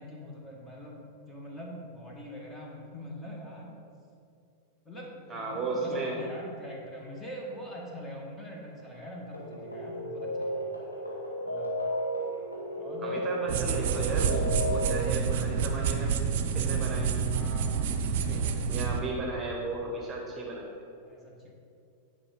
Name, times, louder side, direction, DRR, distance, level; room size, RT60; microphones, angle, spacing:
voice 1, 0.0-3.7 4.9-10.7 11.5-11.7 12.8-13.5 14.9-15.2 17.3-18.1 21.0-21.5, equal, 15° left, -2 dB, 1.8 m, -43 dB
voice 2, 5.3-6.2 13.0-16.2 16.5-17.1 18.3-20.7, right 2 dB, 20° right, -1 dB, 1.2 m, -35 dB
sound 1, 9.3-15.3, equal, 85° left, 1.3 m, -34 dB
sound 2, 13.5-19.0, right 6 dB, 50° right, 0.6 m, -28 dB
9.7 x 5.2 x 5.4 m, 2.6 s
figure-of-eight pair, 90°, 0 cm